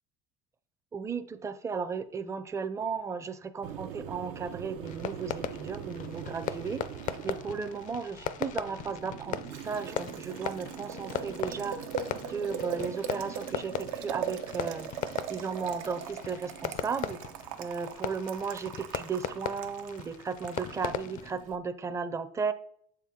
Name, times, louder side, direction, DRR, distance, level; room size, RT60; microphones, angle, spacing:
voice 1, 0.9-6.8 7.2-9.4 9.6-11.8 12.3-14.9 15.3-17.2 17.6-22.5, right 5 dB, 15° right, 10 dB, 0.5 m, -35 dB
Boiling, 3.6-21.6, right 8 dB, 85° right, 0.6 m, -41 dB
Fireworks, 4.8-21.3, left 9 dB, 50° left, 0.4 m, -39 dB
7.0 x 4.3 x 3.7 m, 0.66 s
supercardioid pair, 100°, 17 cm